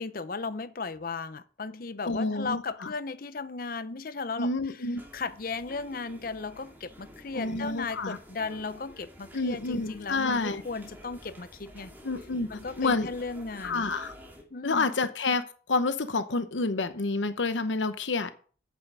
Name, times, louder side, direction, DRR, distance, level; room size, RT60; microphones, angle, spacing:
voice 1, 0.0-4.9 5.1-11.9 12.5-13.9 14.5-14.9, left 4 dB, 50° left, 0.7 m, -36 dB
voice 2, 2.1-2.9 4.4-5.0 7.3-8.2 9.3-10.6 12.0-12.5 12.8-13.1 13.6-14.1 14.6-15.4 15.7-18.3, left 3 dB, 85° left, 0.9 m, -28 dB
sound 1, 5.0-14.4, equal, 10° right, 2.5 m, -50 dB
8.7 x 8.3 x 5.5 m
head